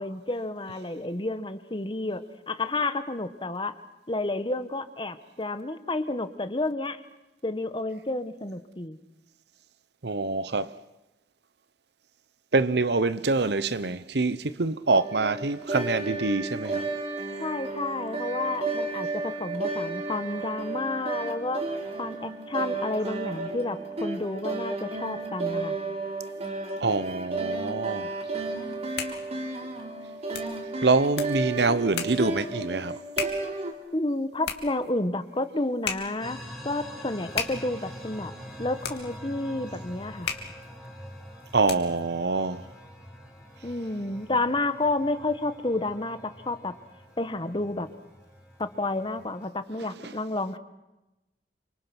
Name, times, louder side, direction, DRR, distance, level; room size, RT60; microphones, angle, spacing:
voice 1, 0.0-3.8 4.1-7.0 7.4-9.0 17.4-21.6 22.0-25.7 33.9-38.3 38.6-40.3 43.6-46.7 47.2-47.9 48.6-50.6, left 2 dB, 30° left, 1.5 m, -30 dB
voice 2, 10.0-10.7 12.5-16.9 26.8-28.1 30.8-33.0 41.5-42.6, right 3 dB, 70° right, 0.9 m, -25 dB
sound 1, 15.0-33.7, right 3 dB, 40° right, 3.7 m, -33 dB
sound 2, 28.6-42.1, left 6 dB, 70° left, 2.8 m, -38 dB
sound 3, 36.2-49.5, equal, ahead, 4.4 m, -45 dB
28.5 x 26.0 x 6.1 m
head